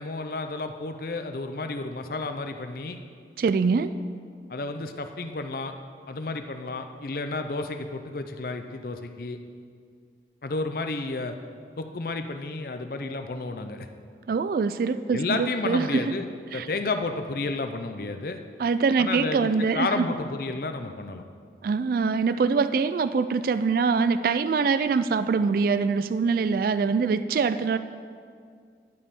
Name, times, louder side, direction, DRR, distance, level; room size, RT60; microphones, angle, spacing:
voice 1, 0.0-3.0 4.5-5.7 6.1-9.4 10.4-11.4 11.8-13.9 15.1-16.3 16.5-18.4 19.0-21.2, left 3 dB, 55° left, 7 dB, 0.6 m, -31 dB
voice 2, 3.4-3.9 14.3-16.1 16.5-16.7 18.6-20.1 21.6-27.8, right 5 dB, 55° right, 12 dB, 0.3 m, -24 dB
12.0 x 5.4 x 8.4 m, 2.2 s
head